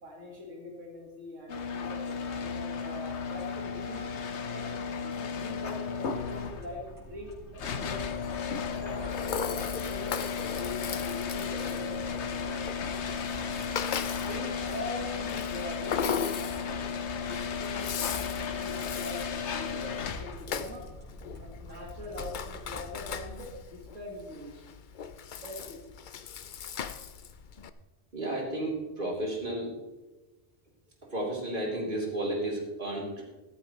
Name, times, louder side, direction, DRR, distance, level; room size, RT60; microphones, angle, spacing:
voice 1, 0.0-4.1 4.5-10.2 10.6-12.6 13.3-13.6 14.2-16.9 17.2-20.8 21.2-24.6 25.4-25.8, left 1 dB, 85° right, -1 dB, 2.3 m, -43 dB
sound 1, 1.5-20.5, left 6 dB, 70° left, 1.2 m, -34 dB
sound 2, 6.1-23.5, left 1 dB, 15° left, 3.6 m, -48 dB
Rattle (instrument), 8.7-27.7, left 7 dB, 50° left, 0.6 m, -39 dB
voice 2, 28.1-29.7 31.1-33.2, right 1 dB, 45° right, -3 dB, 3.6 m, -32 dB
14.5 x 13.5 x 3.2 m, 1.2 s
omnidirectional pair, 1.3 m